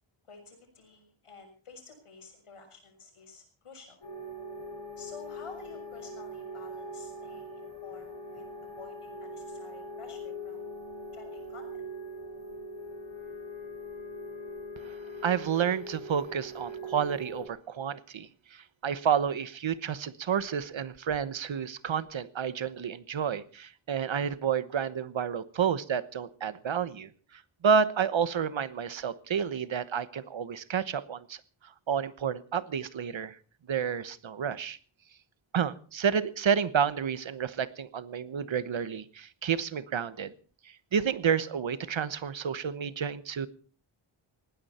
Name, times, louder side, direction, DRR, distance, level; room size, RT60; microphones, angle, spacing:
voice 1, 0.3-4.0 5.0-8.5 8.8-10.7 11.1-11.8, left 4 dB, 90° left, 5 dB, 6.6 m, -50 dB
sound 1, 4.0-17.5, equal, 70° left, 7.8 m, -42 dB
voice 2, 14.8-33.4 33.7-34.8 35.5-40.3 40.6-43.5, right 7 dB, 65° right, 15 dB, 1.2 m, -30 dB
20.0 x 16.0 x 4.3 m, 0.40 s
wide cardioid pair, 160°, 50 cm